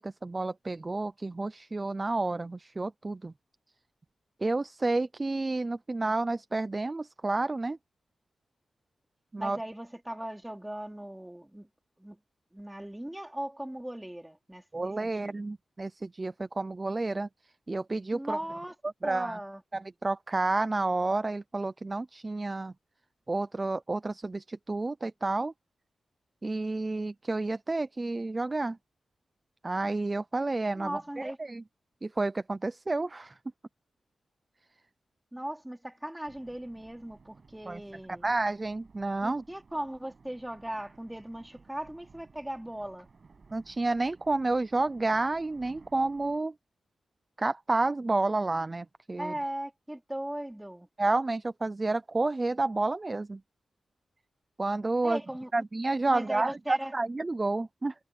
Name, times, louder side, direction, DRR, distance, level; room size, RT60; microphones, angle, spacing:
voice 1, 0.0-3.3 4.4-7.8 9.3-9.6 14.7-17.3 17.7-18.4 19.0-19.4 19.7-22.7 23.3-25.5 26.4-28.8 29.6-31.6 32.0-33.4 37.7-37.8 38.1-39.4 43.5-46.5 47.4-49.3 51.0-53.4 54.6-55.2 55.5-57.9, right 2 dB, 25° right, 0.6 m, -30 dB
voice 2, 9.4-11.7 12.0-12.2 12.5-15.4 18.1-18.7 19.0-19.6 30.8-31.4 35.3-38.2 39.2-43.1 49.2-50.9 55.0-55.5 56.1-56.9, right 1 dB, 10° right, 3.2 m, -38 dB
sound 1, 36.3-46.4, right 4 dB, 45° right, 7.3 m, -58 dB
wide cardioid pair, 100°, 0 cm